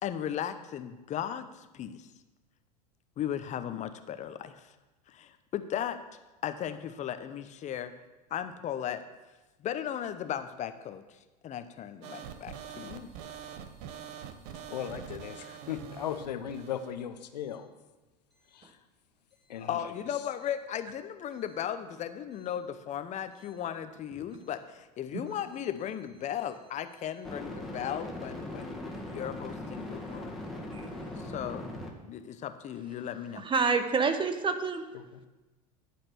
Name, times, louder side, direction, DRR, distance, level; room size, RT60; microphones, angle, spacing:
voice 1, 0.0-2.0 3.2-4.7 5.1-6.0 6.4-7.9 8.3-9.0 9.6-11.0 11.4-13.1 19.6-28.8 29.1-30.4 31.2-31.7 32.1-33.4, left 10 dB, 35° left, 10 dB, 0.7 m, -36 dB
sound 1, 12.0-17.0, right 8 dB, 55° right, 0.9 m, -44 dB
voice 2, 14.7-17.7 18.5-18.8 19.5-19.9 34.9-35.0, left 9 dB, 75° left, 8 dB, 0.8 m, -37 dB
sound 2, 22.4-22.5 27.3-31.9, left 1 dB, ahead, 1.8 m, -40 dB
voice 3, 33.4-34.8, right 5 dB, 25° right, 8 dB, 1.0 m, -28 dB
12.0 x 4.3 x 6.7 m, 1.1 s
hypercardioid pair, 85°, 21 cm